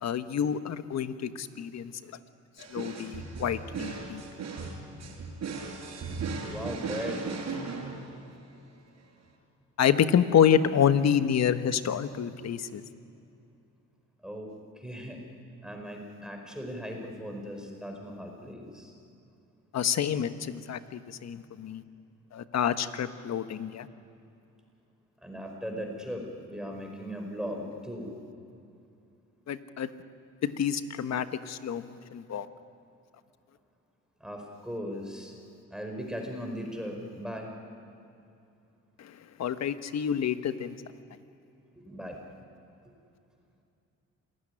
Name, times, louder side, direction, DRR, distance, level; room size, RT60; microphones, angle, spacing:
voice 1, 0.0-1.9 2.7-4.2 9.8-12.8 19.7-21.8 22.3-23.9 29.5-29.9 30.4-32.5 39.0-40.8, left 8 dB, 60° left, 10 dB, 1.3 m, -28 dB
sound 1, 2.6-8.4, right 4 dB, 60° right, 5.6 m, -37 dB
voice 2, 6.5-7.2 8.0-8.1 14.2-14.5 14.7-15.2 15.6-18.9 25.2-28.1 34.2-35.3 35.7-37.5 41.7-42.2 42.8-42.9, equal, ahead, 2 dB, 5.0 m, -38 dB
27.0 x 16.5 x 10.0 m, 2.6 s
cardioid pair, 90°, 30 cm